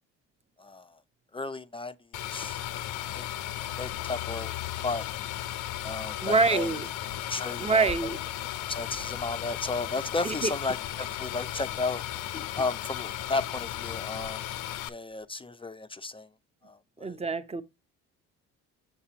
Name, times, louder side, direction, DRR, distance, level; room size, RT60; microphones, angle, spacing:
voice 1, 0.6-0.9 1.3-2.0 2.3-2.6 3.1-3.2 3.8-4.5 4.8-5.1 5.8-6.7 7.2-8.1 8.7-12.0 12.3-14.4 14.9-16.3 16.6-17.2, left 3 dB, 15° left, 0.5 m, -34 dB
sound 1, 2.1-14.9, left 13 dB, 75° left, 0.7 m, -35 dB
voice 2, 6.2-6.9 7.6-8.2 10.2-10.5 17.0-17.6, right 4 dB, 20° right, 0.7 m, -25 dB
6.6 x 5.7 x 2.9 m
supercardioid pair, 85°, 32 cm